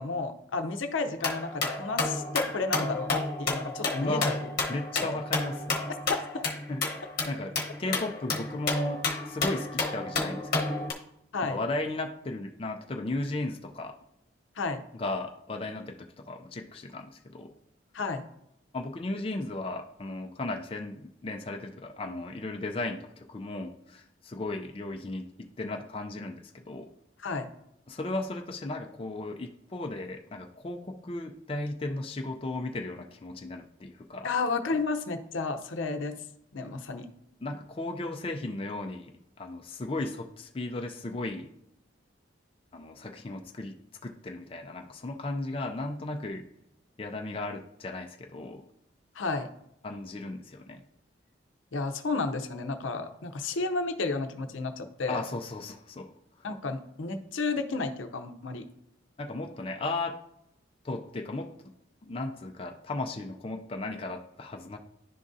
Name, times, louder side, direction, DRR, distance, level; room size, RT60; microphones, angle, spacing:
voice 1, 0.0-4.4 5.0-5.2 6.3-6.5 11.3-11.6 14.6-14.8 17.9-18.3 27.2-27.5 34.2-36.2 36.5-37.1 49.1-49.5 51.7-55.2 56.4-58.7, left 3 dB, 85° left, 8 dB, 0.7 m, -32 dB
sound 1, 1.2-10.9, left 3 dB, 45° left, 1.0 m, -31 dB
voice 2, 4.0-4.4 4.7-5.8 6.7-6.8 7.3-10.9 11.4-14.0 14.9-17.5 18.7-26.9 27.9-34.3 37.4-41.5 42.7-43.7 44.0-46.5 47.0-48.6 49.8-50.8 55.1-56.1 59.2-60.2 60.8-61.5 62.0-64.8, left 2 dB, 30° left, 3 dB, 0.4 m, -35 dB
11.0 x 3.7 x 2.6 m, 0.78 s
head